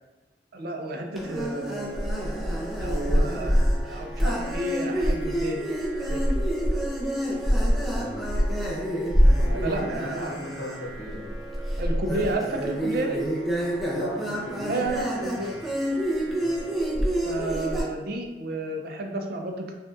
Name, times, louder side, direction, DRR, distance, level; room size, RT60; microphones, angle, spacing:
voice 1, 0.5-2.0 2.8-5.7 6.1-6.2 9.6-10.3 11.8-13.2 14.7-15.5 17.2-19.7, right 2 dB, 55° right, 3 dB, 0.5 m, -31 dB
sound 1, 1.1-17.8, equal, ahead, 0.5 m, -26 dB
voice 2, 7.8-8.2 9.3-11.4 13.8-15.0 15.3-15.6 16.3-16.5, left 1 dB, 85° left, -2 dB, 0.9 m, -37 dB
4.9 x 2.4 x 2.5 m, 1.1 s
head